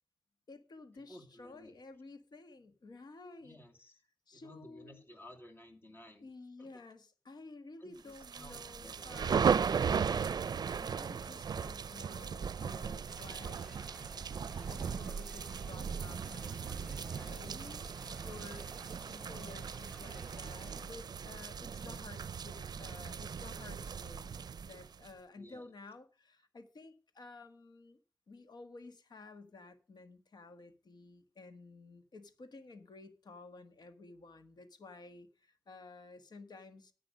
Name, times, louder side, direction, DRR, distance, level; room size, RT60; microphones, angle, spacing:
voice 1, 0.5-3.6 4.3-5.0 6.2-14.1 14.7-18.7 19.0-24.3 24.6-28.0 28.3-36.9, left 3 dB, 85° left, 1.5 m, -53 dB
voice 2, 1.1-1.8 3.4-4.0 4.3-6.3 6.6-6.7 7.8-9.1 25.4-25.7, left 1 dB, 30° left, 2.5 m, -55 dB
sound 1, 8.1-25.1, right 6 dB, 80° right, 0.4 m, -37 dB
sound 2, 13.1-20.9, equal, 5° left, 1.1 m, -56 dB
10.0 x 8.9 x 5.4 m
wide cardioid pair, 110°, 7 cm